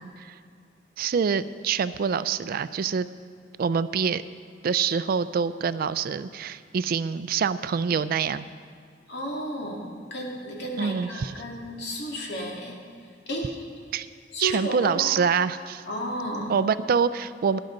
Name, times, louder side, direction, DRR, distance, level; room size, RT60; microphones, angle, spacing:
voice 1, 1.0-3.1 3.6-4.2 4.6-8.5 10.8-11.3 13.9-14.1 14.4-15.8 16.5-17.6, right 6 dB, 50° right, 15 dB, 0.3 m, -25 dB
voice 2, 9.1-12.8 13.3-13.6 14.3-15.1 15.9-16.5, equal, 60° left, -1 dB, 2.3 m, -32 dB
17.5 x 10.5 x 3.9 m, 2.2 s
head